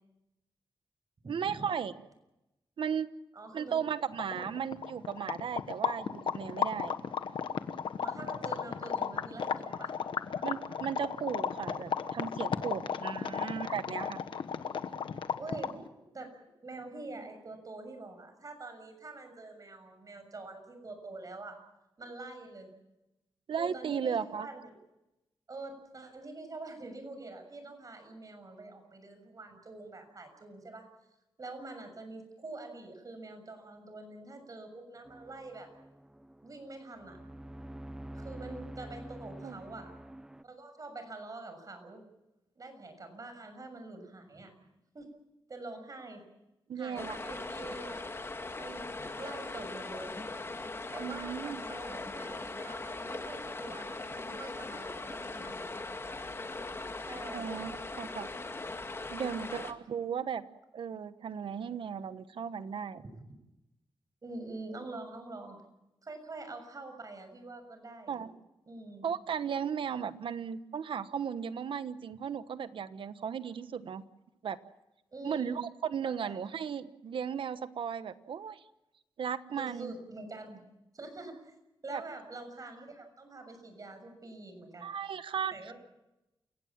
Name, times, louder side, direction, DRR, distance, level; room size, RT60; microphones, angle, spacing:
voice 1, 1.3-1.9 2.8-3.1 3.5-6.9 10.4-14.2 23.5-24.5 39.4-39.6 46.7-47.2 51.0-51.6 57.3-58.3 59.1-60.4 60.7-63.0 68.1-68.3 69.0-74.0 74.4-74.6 75.2-78.6 79.2-79.9 81.9-82.0 84.8-85.7, right 7 dB, 75° right, 13 dB, 1.1 m, -36 dB
voice 2, 3.3-3.8 4.3-4.6 8.0-10.0 12.7-13.5 15.4-16.3 16.6-21.6 22.0-22.7 23.6-24.7 25.5-30.9 31.4-35.7 36.4-37.2 38.1-39.9 40.4-42.0 42.5-44.6 44.9-45.1 45.5-46.2 46.7-48.1 48.5-48.9 49.1-50.2 50.9-55.8 57.1-57.7 59.1-59.5 63.0-63.3 64.2-65.6 66.0-68.3 68.7-69.1 75.1-75.6 76.0-76.4 79.6-80.6 80.9-81.5 81.8-84.9 85.5-85.7, right 2 dB, 40° right, 7 dB, 6.8 m, -45 dB
sound 1, 3.9-4.0 4.1-15.9, left 7 dB, 75° left, 1.3 m, -35 dB
sound 2, 35.0-40.4, right 1 dB, 5° right, 0.7 m, -47 dB
sound 3, 47.0-59.7, left 2 dB, 30° left, 2.0 m, -40 dB
29.0 x 16.5 x 7.5 m, 0.95 s
cardioid pair, 80°, 9 cm